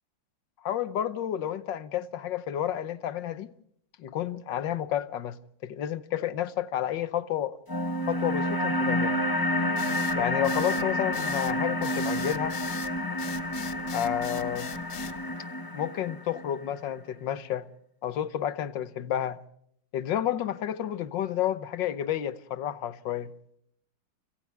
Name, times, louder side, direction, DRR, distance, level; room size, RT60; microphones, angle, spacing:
voice 1, 0.6-3.5 4.0-5.4 5.6-7.6 8.1-9.2 10.2-12.6 13.9-14.7 15.7-17.7 18.0-19.4 19.9-23.3, left 10 dB, 85° left, 1.7 m, -30 dB
sound 1, 7.7-16.7, left 1 dB, 15° left, 1.3 m, -29 dB
sound 2, 9.8-15.2, left 9 dB, 65° left, 1.6 m, -41 dB
29.0 x 26.5 x 3.4 m
omnidirectional pair, 1.9 m